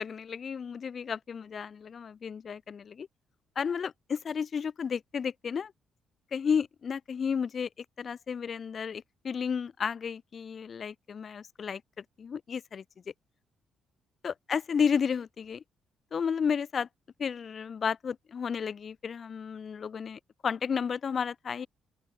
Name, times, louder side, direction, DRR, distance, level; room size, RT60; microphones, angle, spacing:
voice 1, 0.0-3.1 3.6-5.7 6.3-12.8 14.2-15.6 16.1-16.9 17.2-21.7, left 6 dB, 45° left, 2.4 m, -32 dB
open air
cardioid pair, 90°, 0 cm